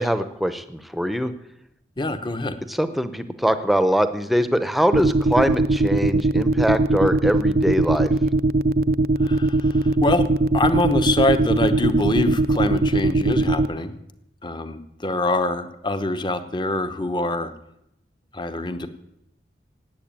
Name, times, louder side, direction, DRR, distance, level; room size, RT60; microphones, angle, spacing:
voice 1, 0.0-1.3 2.7-8.1, equal, ahead, 11 dB, 0.8 m, -22 dB
voice 2, 2.0-2.6 9.2-10.3 10.5-13.9 14.4-17.5 18.3-18.9, left 2 dB, 25° left, 10 dB, 1.0 m, -24 dB
sound 1, 4.9-13.7, right 2 dB, 55° right, 0.5 m, -19 dB
17.5 x 8.3 x 8.9 m, 0.82 s
head